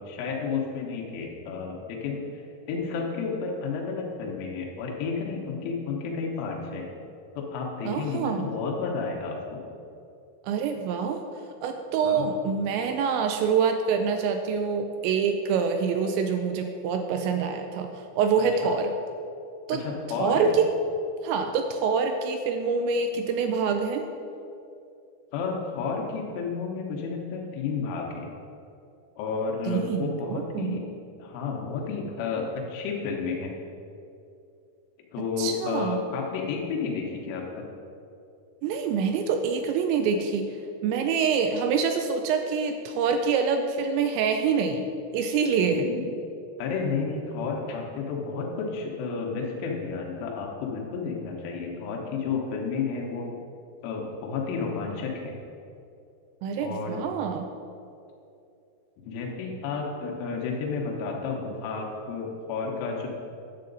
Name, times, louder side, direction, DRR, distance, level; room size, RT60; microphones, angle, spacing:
voice 1, 0.0-6.9 7.4-9.6 12.0-12.3 18.6-18.7 19.7-20.5 25.3-28.3 29.2-30.8 31.2-33.5 35.1-37.6 45.6-46.0 46.6-53.3 53.8-55.3 56.6-57.0 59.1-63.1, left 5 dB, 90° left, -1 dB, 3.4 m, -31 dB
voice 2, 7.9-8.5 10.4-11.2 11.6-18.9 19.7-19.8 20.2-20.7 21.2-24.1 29.7-30.8 35.4-36.0 38.6-40.6 40.8-44.9 45.1-45.9 56.4-57.5, right 6 dB, 85° right, 6 dB, 2.6 m, -26 dB
10.0 x 7.6 x 3.9 m, 2.7 s
omnidirectional pair, 5.5 m